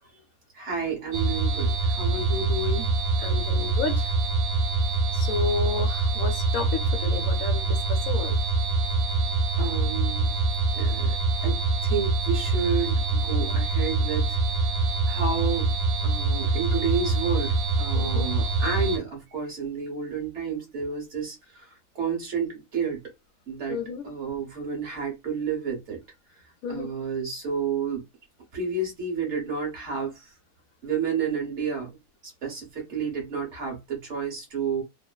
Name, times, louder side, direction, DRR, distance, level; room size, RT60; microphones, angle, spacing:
voice 1, 0.5-2.9 9.6-10.3 10.7-11.1 11.4-14.4 15.1-15.7 16.0-21.7 21.9-23.0 23.5-26.0 26.7-28.0 28.5-30.3 30.8-31.9 32.4-34.8, right 5 dB, 50° right, 1.4 m, -30 dB
sound 1, 1.1-19.0, right 3 dB, 90° right, 1.2 m, -25 dB
voice 2, 3.2-4.1 5.1-8.4 17.9-18.3 23.7-24.1 26.6-26.9, left 4 dB, 65° left, 1.1 m, -31 dB
3.1 x 2.0 x 2.2 m
omnidirectional pair, 1.7 m